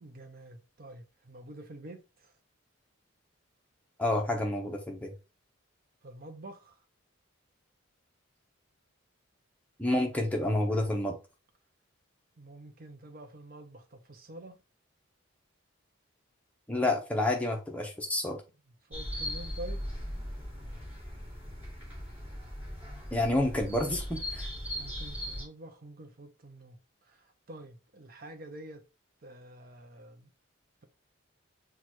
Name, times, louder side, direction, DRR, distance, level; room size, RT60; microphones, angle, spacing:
voice 1, 0.0-2.0 6.0-6.7 12.4-14.6 18.9-19.8 24.8-26.8 27.1-28.8 29.2-30.3, right 1 dB, 45° right, 0.6 m, -47 dB
voice 2, 4.0-5.1 9.8-11.1 16.7-18.4 23.1-24.5, left 1 dB, 5° left, 0.7 m, -29 dB
sound 1, 18.9-25.4, equal, 10° right, 2.4 m, -38 dB
6.3 x 2.4 x 2.9 m
head